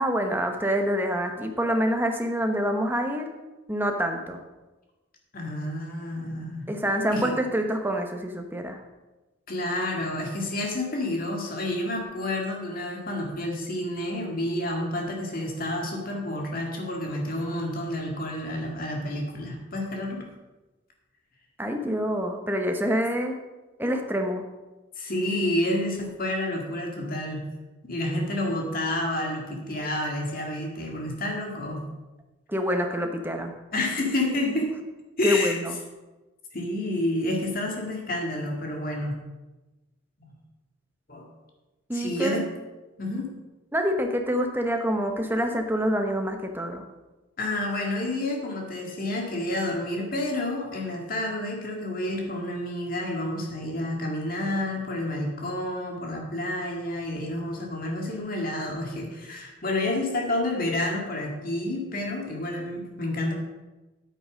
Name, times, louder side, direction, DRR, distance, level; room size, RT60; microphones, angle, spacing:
voice 1, 0.0-3.3 3.7-4.4 6.7-8.8 21.6-23.4 23.8-24.4 32.5-33.5 35.2-35.8 41.9-42.4 43.7-46.8, equal, 10° right, 4 dB, 1.0 m, -26 dB
voice 2, 5.3-6.7 7.1-7.3 9.5-20.3 21.8-22.1 25.0-27.4 27.8-31.8 33.7-34.7 35.2-35.6 36.5-39.2 40.2-40.3 41.1-41.3 41.9-42.5 43.0-43.3 47.4-63.3, left 1 dB, 45° left, 0 dB, 2.1 m, -29 dB
9.0 x 8.6 x 5.1 m, 1.1 s
head